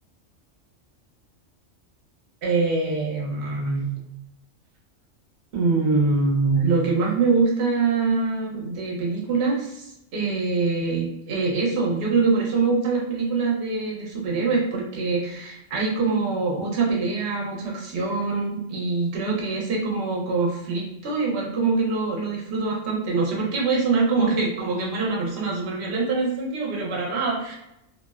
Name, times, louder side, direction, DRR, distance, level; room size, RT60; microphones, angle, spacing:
voice 1, 2.4-3.9 5.5-27.5, right 4 dB, 60° right, -3 dB, 1.0 m, -24 dB
2.6 x 2.0 x 2.3 m, 0.82 s
omnidirectional pair, 1.3 m